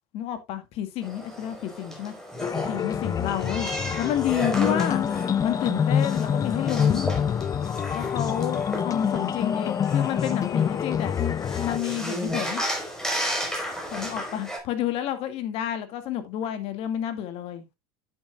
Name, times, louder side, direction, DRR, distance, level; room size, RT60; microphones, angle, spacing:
voice 1, 0.1-2.1 2.6-3.7 4.0-5.0 5.4-7.2 7.9-11.2 11.6-12.6 13.9-17.6, left 11 dB, 55° left, 2.1 m, -30 dB
sound 1, 1.0-14.6, equal, 5° left, 4.7 m, -34 dB
sound 2, 2.4-11.8, left 8 dB, 30° left, 0.7 m, -26 dB
9.6 x 9.5 x 2.4 m
supercardioid pair, 100°, 12 cm